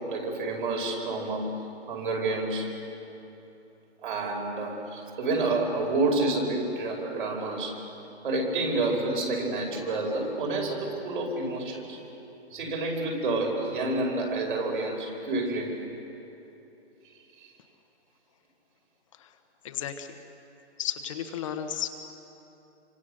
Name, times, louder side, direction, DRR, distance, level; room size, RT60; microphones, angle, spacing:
voice 1, 0.0-1.4 1.9-2.7 4.0-7.8 8.2-12.0 12.5-15.8 17.4-17.5, right 2 dB, 50° right, 1 dB, 5.3 m, -29 dB
voice 2, 19.6-20.2 20.8-21.9, left 9 dB, 30° left, 6 dB, 1.2 m, -33 dB
28.0 x 25.5 x 6.6 m, 3.0 s
hypercardioid pair, 160°, 33 cm